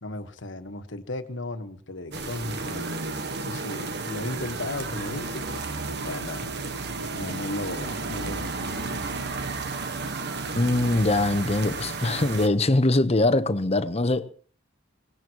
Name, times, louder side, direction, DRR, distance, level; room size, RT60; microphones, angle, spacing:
voice 1, 0.0-3.0 3.4-5.6 6.1-6.5 7.1-9.0, left 2 dB, 70° left, 1.4 m, -35 dB
sound 1, 2.1-12.5, right 3 dB, 60° right, 1.4 m, -32 dB
voice 2, 10.5-14.3, left 2 dB, 35° left, 1.0 m, -22 dB
24.0 x 19.5 x 3.0 m
head